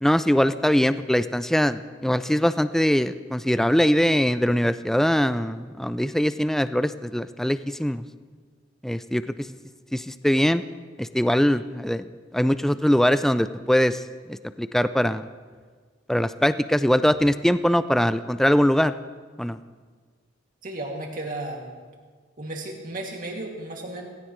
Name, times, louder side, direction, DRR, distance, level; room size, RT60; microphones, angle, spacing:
voice 1, 0.0-8.0 8.8-9.5 9.9-10.6 11.0-12.0 12.3-14.0 14.3-15.3 16.1-18.9 19.4-19.6, equal, ahead, 13 dB, 0.3 m, -22 dB
voice 2, 20.6-21.7 22.4-24.1, right 2 dB, 45° right, 0 dB, 2.4 m, -34 dB
18.0 x 16.5 x 3.2 m, 1.5 s
head